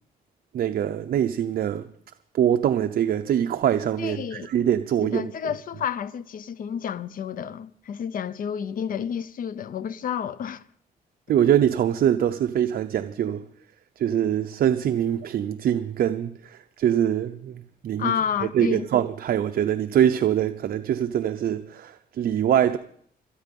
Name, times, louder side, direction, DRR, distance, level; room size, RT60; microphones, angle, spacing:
voice 1, 0.5-1.9 2.3-5.3 11.3-13.4 14.0-18.1 18.4-22.8, right 10 dB, 70° right, 0.7 m, -23 dB
voice 2, 4.0-4.5 5.0-10.6 18.0-18.9, left 8 dB, 60° left, 0.7 m, -30 dB
26.0 x 9.2 x 5.4 m
cardioid pair, 130°, 16 cm